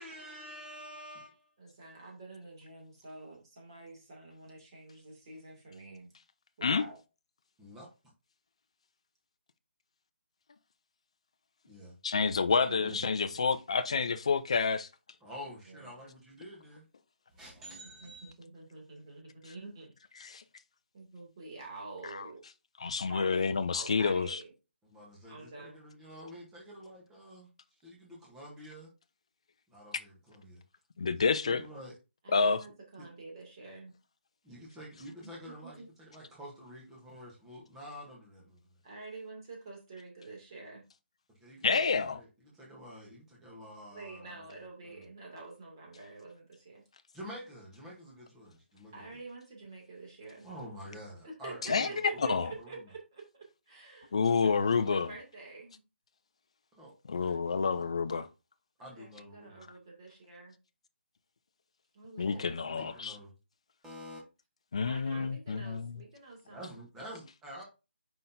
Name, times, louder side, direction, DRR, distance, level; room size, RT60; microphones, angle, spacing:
voice 1, 0.0-1.5 7.6-7.9 11.7-11.9 12.8-13.1 15.2-16.9 17.3-18.3 24.8-27.5 27.8-28.9 29.7-30.6 31.3-31.9 33.0-33.1 34.4-38.7 41.4-44.6 44.8-45.0 47.1-49.1 50.4-52.8 56.7-57.9 58.8-59.7 62.2-63.3 63.8-64.2 65.1-65.3 66.4-67.6, equal, 5° right, 1.0 m, -48 dB
voice 2, 1.6-6.1 6.6-7.0 12.7-13.4 15.7-15.9 18.0-19.9 20.9-22.4 23.1-23.3 23.7-24.5 25.3-25.8 32.2-34.0 35.2-35.3 35.8-35.9 38.8-40.8 43.9-46.8 48.9-50.5 51.2-53.3 53.7-54.1 54.4-55.8 58.8-60.6 61.9-63.0 64.8-66.6, right 3 dB, 20° right, 2.4 m, -47 dB
voice 3, 12.0-14.9 20.2-20.4 22.1-22.3 22.8-24.4 31.0-31.6 32.3-32.6 41.6-42.2 51.7-51.9 52.3-52.5 54.1-55.1 57.1-58.3 62.2-63.2 64.7-66.0, left 5 dB, 30° left, 0.5 m, -29 dB
7.5 x 5.7 x 2.7 m
hypercardioid pair, 180°, 6 cm